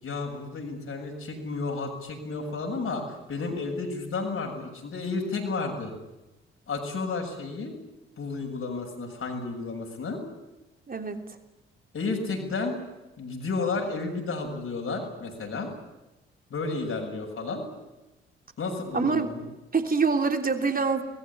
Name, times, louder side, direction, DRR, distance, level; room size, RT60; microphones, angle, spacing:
voice 1, 0.0-5.9 6.7-7.7 8.2-10.2 11.9-12.8 13.2-15.7 16.5-17.6 18.6-19.4, left 3 dB, 50° left, 1 dB, 7.2 m, -32 dB
voice 2, 10.9-11.2 18.9-19.3 19.7-21.0, right 4 dB, 30° right, 5 dB, 3.3 m, -25 dB
27.5 x 21.0 x 8.7 m, 1.0 s
figure-of-eight pair, 40°, 29 cm